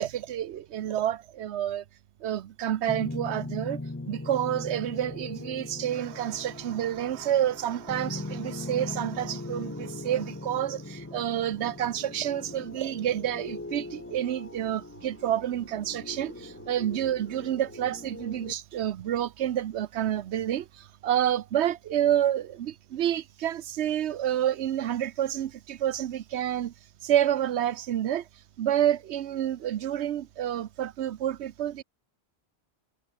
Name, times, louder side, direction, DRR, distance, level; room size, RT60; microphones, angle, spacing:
voice 1, 0.0-1.8 2.2-3.8 4.1-26.7 27.0-28.3 28.6-31.8, right 11 dB, 85° right, 1.0 m, -29 dB
sound 1, 2.9-18.5, left 2 dB, 15° left, 0.9 m, -40 dB
omnidirectional pair, 1.1 m